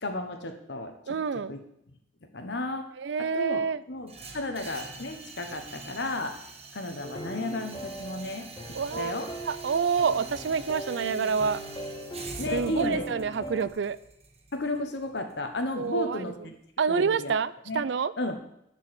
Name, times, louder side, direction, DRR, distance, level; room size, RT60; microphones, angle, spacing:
voice 1, 0.0-1.6 2.3-2.9 3.2-3.6 3.9-6.4 6.7-8.5 9.0-9.3 10.9-11.3 12.4-13.0 14.5-16.6 16.9-17.3 17.7-17.8 18.2-18.4, left 1 dB, 65° left, 6 dB, 1.2 m, -33 dB
voice 2, 1.1-1.5 3.0-3.8 8.7-9.1 9.5-11.6 12.5-14.0 15.8-16.3 16.8-18.1, right 5 dB, 70° right, 16 dB, 0.4 m, -27 dB
sound 1, 4.1-16.1, right 3 dB, 35° right, 1.6 m, -45 dB
sound 2, 7.0-13.7, right 1 dB, 25° left, 1.3 m, -39 dB
11.0 x 4.8 x 7.8 m, 0.78 s
head